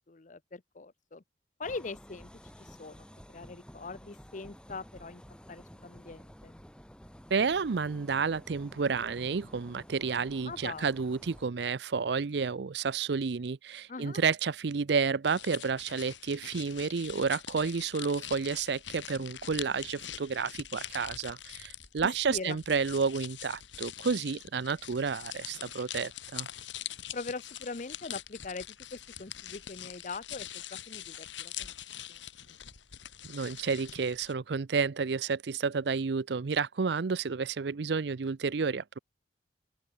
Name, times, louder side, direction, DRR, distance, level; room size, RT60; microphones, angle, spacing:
voice 1, 0.1-1.2 1.6-2.3 2.6-3.0 3.3-5.2 5.5-6.6 10.4-10.8 13.9-14.2 22.0-22.6 27.1-31.7 32.1-32.2, left 3 dB, 45° left, 0.7 m, -42 dB
sound 1, 1.6-11.5, equal, 5° left, 3.1 m, -52 dB
voice 2, 7.3-26.5 33.3-39.0, right 5 dB, 65° right, 0.5 m, -31 dB
sound 2, 15.3-34.3, left 11 dB, 90° left, 2.0 m, -44 dB
open air
head